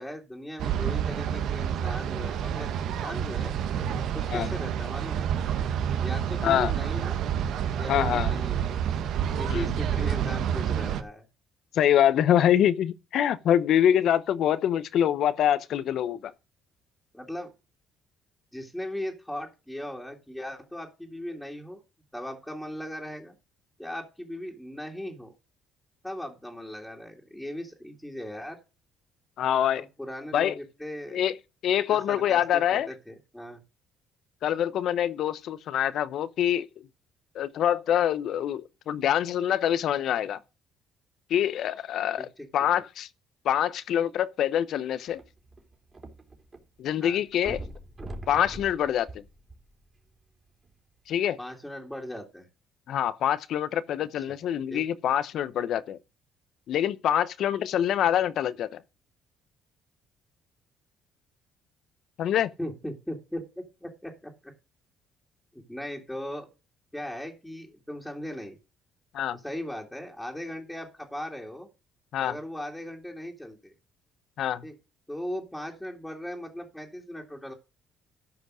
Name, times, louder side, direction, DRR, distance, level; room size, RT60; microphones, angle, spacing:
voice 1, 0.0-3.5 4.1-5.3 6.0-7.2 7.7-8.7 9.4-11.3 17.1-17.5 18.5-21.8 22.1-23.4 23.8-25.3 26.0-28.6 29.7-31.3 31.9-33.6 42.2-42.5 47.0-47.2 51.4-52.5 54.3-54.4 54.7-54.8 62.6-64.5 65.5-66.5 66.9-68.6 69.3-71.7 72.2-73.7 74.6-74.7 75.1-77.5, left 1 dB, 5° left, 2.4 m, -38 dB
sound 1, 0.6-11.0, right 9 dB, 70° right, 1.2 m, -29 dB
voice 2, 6.4-6.7 7.9-8.3 9.5-9.7 11.7-16.3 29.4-29.8 30.3-30.5 31.1-31.3 31.6-32.9 34.4-36.7 37.3-40.4 41.3-42.3 42.5-43.1 43.4-45.2 46.8-47.6 48.3-49.1 51.1-51.4 52.9-56.0 56.7-58.8 62.2-62.5 69.1-69.4 72.1-72.3 74.4-74.6, left 10 dB, 65° left, 0.8 m, -25 dB
sound 2, 45.1-46.6 46.9-47.0 47.4-50.0 50.7-50.8, right 1 dB, 25° right, 3.3 m, -41 dB
13.0 x 5.2 x 6.3 m
cardioid pair, 95°, 0 cm